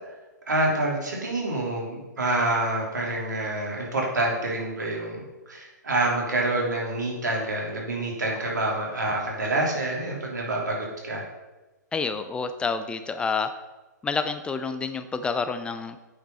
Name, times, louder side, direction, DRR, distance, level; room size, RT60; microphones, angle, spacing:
voice 1, 0.5-11.3, right 2 dB, 70° right, -2 dB, 3.1 m, -27 dB
voice 2, 11.9-13.5 14.0-16.0, left 4 dB, 10° left, 10 dB, 0.4 m, -28 dB
8.7 x 5.9 x 5.4 m, 1.1 s
figure-of-eight pair, 120°, 10 cm